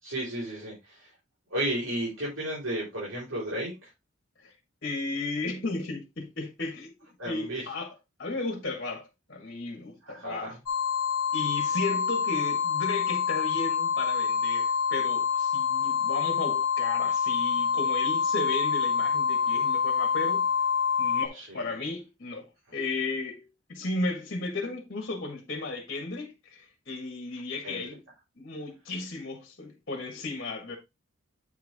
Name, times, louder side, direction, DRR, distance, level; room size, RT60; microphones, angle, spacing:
voice 1, 0.0-1.1 1.5-3.9 7.2-7.6 10.0-10.5 21.3-21.7 22.7-22.8 27.6-27.8, right 1 dB, 80° right, 4.8 m, -33 dB
voice 2, 4.8-6.9 7.2-7.9 8.2-10.6 11.3-20.5 21.0-28.0 28.4-30.8, left 3 dB, 50° left, 1.8 m, -35 dB
sound 1, 10.7-21.3, left 6 dB, 90° left, 0.9 m, -26 dB
8.9 x 4.8 x 3.5 m
head